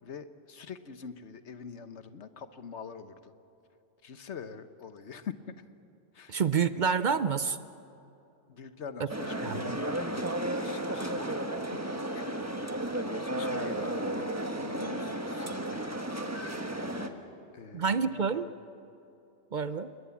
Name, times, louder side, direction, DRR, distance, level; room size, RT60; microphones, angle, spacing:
voice 1, 0.0-3.3 4.0-5.6 6.1-6.4 8.5-11.4 11.7-12.2 13.2-14.3 14.6-16.0 17.1-17.2 17.5-18.4, left 6 dB, 80° left, 11 dB, 1.4 m, -45 dB
voice 2, 6.3-7.6 9.0-9.1 9.4-9.8 17.7-18.5 19.5-19.9, right 6 dB, 50° right, 13 dB, 0.7 m, -28 dB
sound 1, 9.1-17.1, right 1 dB, 15° right, 1.2 m, -33 dB
28.5 x 21.0 x 7.2 m, 2.8 s
omnidirectional pair, 1.2 m